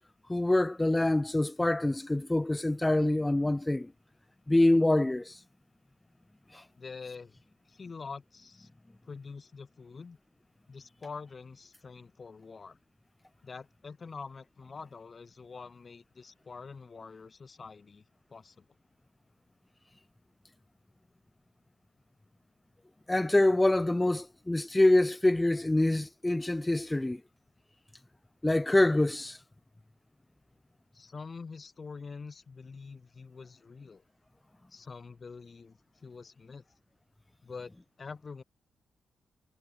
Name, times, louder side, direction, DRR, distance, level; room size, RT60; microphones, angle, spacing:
voice 1, 0.3-3.9 4.5-5.3 23.1-27.2 28.4-29.4, left 1 dB, 15° left, 0.9 m, -25 dB
voice 2, 6.7-7.4 7.6-8.7 9.1-10.2 10.7-12.8 13.4-18.0 18.3-18.6 30.9-34.0 34.7-36.6 37.4-38.4, left 4 dB, 45° left, 4.8 m, -45 dB
cardioid pair, 65°, 0 cm